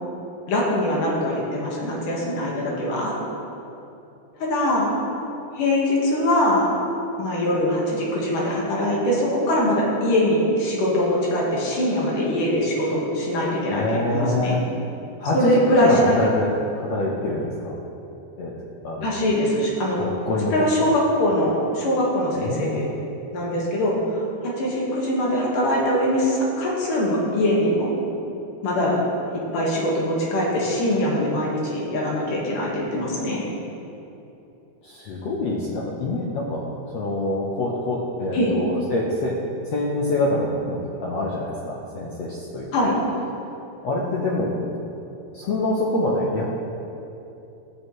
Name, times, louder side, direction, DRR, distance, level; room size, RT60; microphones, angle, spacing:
voice 1, 0.5-3.2 4.4-4.9 5.5-6.7 7.2-14.6 15.3-16.2 19.0-20.0 20.5-22.9 23.3-27.9 28.6-29.0 29.3-33.4 38.3-38.5 42.7-42.9, left 1 dB, 65° left, -4 dB, 3.0 m, -22 dB
voice 2, 13.7-14.6 15.2-16.5 16.8-17.8 18.4-18.5 18.8-19.2 20.0-20.5 20.8-20.9 22.4-22.8 34.8-36.6 36.9-39.4 39.6-42.7 43.8-44.6 45.3-46.6, left 2 dB, 85° left, -4 dB, 1.4 m, -25 dB
15.5 x 6.6 x 3.1 m, 2.9 s
omnidirectional pair, 4.2 m